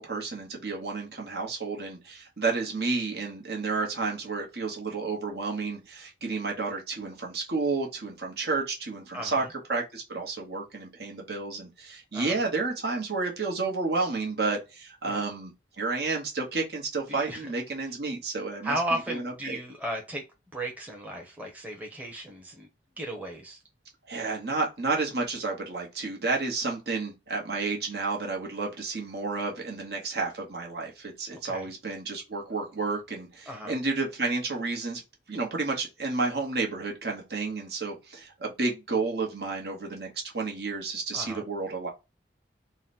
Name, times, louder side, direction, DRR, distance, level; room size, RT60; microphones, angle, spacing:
voice 1, 0.0-19.6 24.1-35.0 35.3-41.9, right 3 dB, 60° right, 1.1 m, -31 dB
voice 2, 9.1-9.5 12.1-12.4 15.0-15.2 17.1-17.5 18.6-20.2 20.5-22.7 23.0-23.6 31.3-31.7 33.5-33.7 41.1-41.4, right 1 dB, 10° right, 0.8 m, -35 dB
3.9 x 2.2 x 4.1 m
head